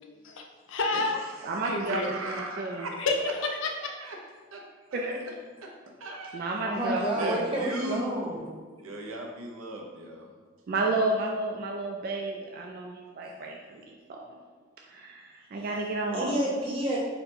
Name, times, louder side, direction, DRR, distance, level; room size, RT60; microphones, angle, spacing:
voice 1, 0.0-1.2 1.7-2.1 3.0-3.7, left 3 dB, 70° left, 3 dB, 0.5 m, -30 dB
voice 2, 0.9-3.0 3.8-4.2 4.5-4.6 5.6-5.7 6.0-6.6 7.1-8.0 8.8-10.3, right 1 dB, 85° right, 1 dB, 0.6 m, -38 dB
voice 3, 1.4-2.0 2.3-2.9 4.9-5.2 6.3-7.4 10.7-14.4 14.9-15.2 15.5-16.3, right 2 dB, 45° right, 0 dB, 0.3 m, -31 dB
voice 4, 6.6-8.4 15.6-15.7 16.1-17.0, right 1 dB, 25° right, -5 dB, 0.8 m, -29 dB
3.9 x 2.2 x 4.4 m, 1.4 s
head